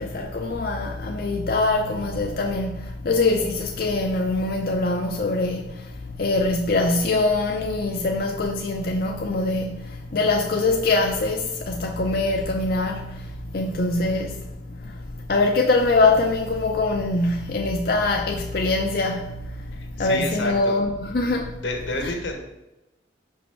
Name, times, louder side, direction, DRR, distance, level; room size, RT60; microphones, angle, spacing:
voice 1, 0.0-21.6 22.0-22.1, left 2 dB, 50° left, 0.5 m, -23 dB
voice 2, 19.8-20.8 21.6-22.4, left 1 dB, 85° left, 1.3 m, -30 dB
5.3 x 5.3 x 4.4 m
head